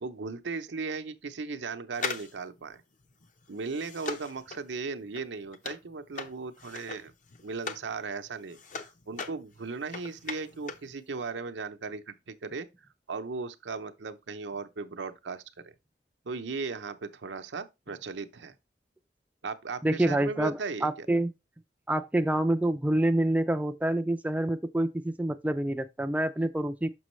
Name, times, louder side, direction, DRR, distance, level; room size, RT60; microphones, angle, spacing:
voice 1, 0.0-2.8 3.5-7.1 7.4-12.7 13.1-15.7 16.2-18.6 19.4-21.1, right 4 dB, 80° right, 0.7 m, -37 dB
sound 1, 1.9-7.9 8.3-10.9 11.2-11.3, left 4 dB, 45° left, 0.7 m, -40 dB
voice 2, 19.8-21.3 21.9-26.9, right 1 dB, 10° right, 0.3 m, -27 dB
6.2 x 6.1 x 3.1 m
head